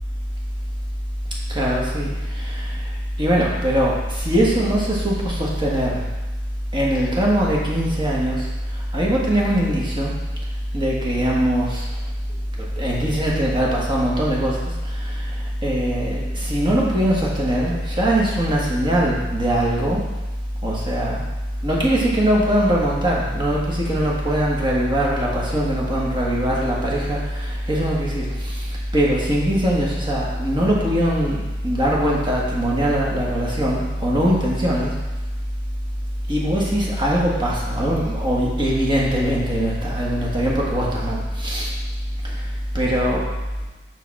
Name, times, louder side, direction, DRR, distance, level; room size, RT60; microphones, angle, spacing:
voice 1, 1.5-2.8 3.2-6.0 6.7-8.4 8.9-10.1 10.7-11.8 12.8-15.3 15.6-20.0 20.6-21.2 21.6-28.6 28.9-34.9 36.3-41.7 42.7-43.2, equal, 25° right, -4 dB, 1.4 m, -21 dB
5.9 x 5.6 x 4.1 m, 1.1 s
head